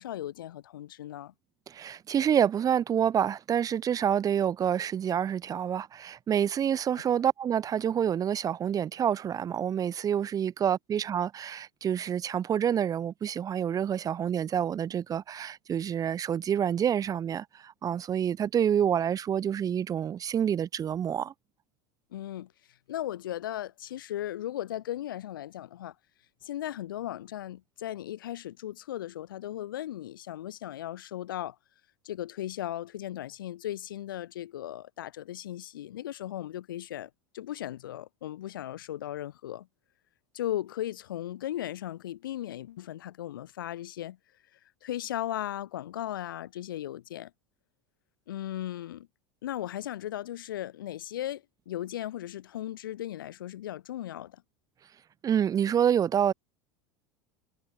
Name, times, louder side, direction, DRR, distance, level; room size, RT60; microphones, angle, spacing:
voice 1, 0.0-1.3 22.1-22.5 22.9-25.9 26.4-31.6 32.0-39.7 40.3-44.2 44.8-47.3 48.3-49.1 49.4-54.4, left 12 dB, 80° left, 6.1 m, -37 dB
voice 2, 1.7-21.3 55.2-56.3, right 9 dB, 35° right, 1.4 m, -27 dB
hypercardioid pair, 90°, 11 cm